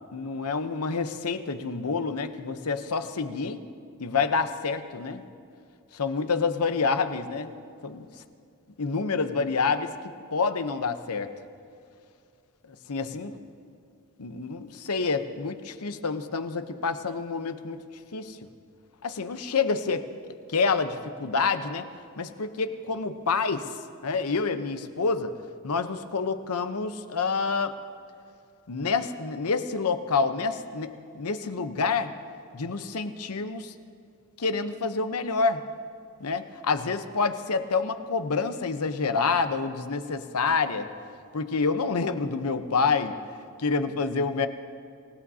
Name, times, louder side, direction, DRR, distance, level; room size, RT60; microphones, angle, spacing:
voice 1, 0.1-3.6 4.0-5.2 5.9-7.5 7.8-8.1 8.8-9.9 10.3-11.3 12.7-13.4 14.2-17.8 18.1-18.4 19.0-21.9 22.2-25.3 25.6-27.8 28.7-32.1 32.5-33.7 34.4-35.6 36.2-40.9 41.3-43.1 43.6-44.5, left 4 dB, 80° left, 9 dB, 0.8 m, -28 dB
27.0 x 17.0 x 2.8 m, 2.4 s
head